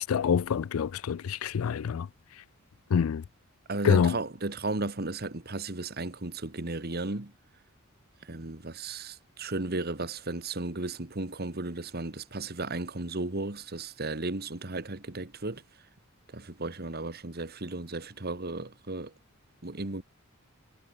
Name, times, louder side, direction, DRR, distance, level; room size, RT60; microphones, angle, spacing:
voice 1, 0.1-2.1 2.9-3.2 3.8-4.1, left 7 dB, 85° left, 0.4 m, -26 dB
voice 2, 3.7-7.3 8.2-15.6 16.3-19.1 19.6-20.0, right 2 dB, 50° right, 1.8 m, -35 dB
head